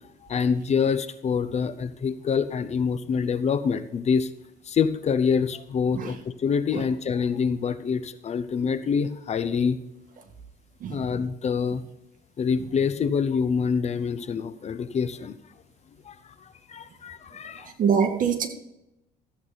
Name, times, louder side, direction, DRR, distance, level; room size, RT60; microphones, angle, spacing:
voice 1, 0.3-4.3 4.7-9.8 10.9-11.8 12.4-15.4 16.0-17.7, left 6 dB, 40° left, 13 dB, 0.7 m, -26 dB
voice 2, 17.8-18.5, right 7 dB, 50° right, 5 dB, 1.8 m, -24 dB
13.5 x 8.4 x 4.0 m, 0.88 s
cardioid pair, 110°, 17 cm